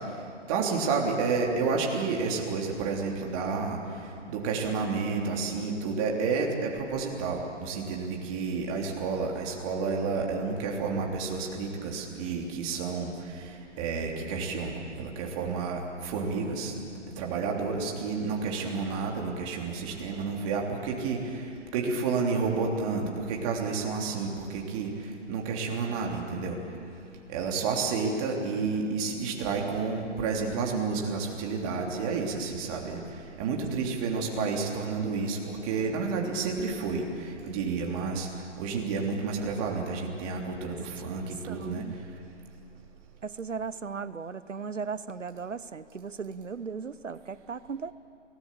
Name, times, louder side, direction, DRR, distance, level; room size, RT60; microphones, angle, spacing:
voice 1, 0.5-3.8 4.3-16.7 17.2-21.5 21.7-24.9 25.3-26.6 27.3-33.0 33.4-38.3 38.6-41.8, right 4 dB, 30° right, 0 dB, 3.3 m, -30 dB
voice 2, 41.5-42.0 43.2-47.9, right 5 dB, 80° right, 16 dB, 0.9 m, -37 dB
28.5 x 18.5 x 7.6 m, 2.6 s
figure-of-eight pair, 130°, 37 cm